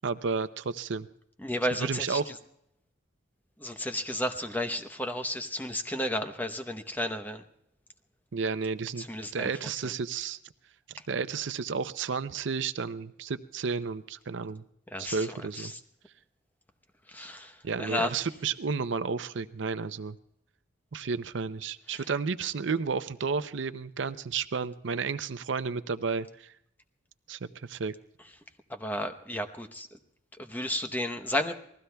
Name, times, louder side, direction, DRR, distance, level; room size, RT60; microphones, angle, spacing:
voice 1, 0.0-1.1 1.8-2.2 8.3-9.1 9.3-10.4 11.1-14.6 15.0-15.7 17.6-20.2 20.9-26.5 27.3-27.9, right 5 dB, 70° right, 12 dB, 0.6 m, -32 dB
voice 2, 1.4-2.3 3.6-7.4 9.0-9.5 14.9-15.3 15.6-15.8 17.1-18.1 21.9-22.0 28.7-29.9 30.4-31.5, left 1 dB, 10° left, 7 dB, 0.9 m, -33 dB
28.5 x 20.0 x 2.3 m, 0.79 s
head